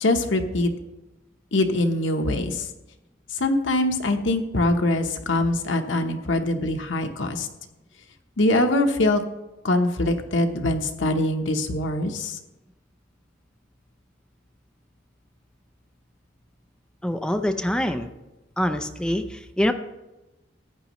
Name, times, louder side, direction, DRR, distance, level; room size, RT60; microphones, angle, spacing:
voice 1, 0.0-0.7 1.5-2.7 3.4-7.5 8.4-9.2 9.6-12.4, left 2 dB, 90° left, 5 dB, 1.0 m, -23 dB
voice 2, 17.0-18.1 18.6-19.7, left 1 dB, 5° left, 7 dB, 0.5 m, -25 dB
14.5 x 9.3 x 3.1 m, 1.0 s
head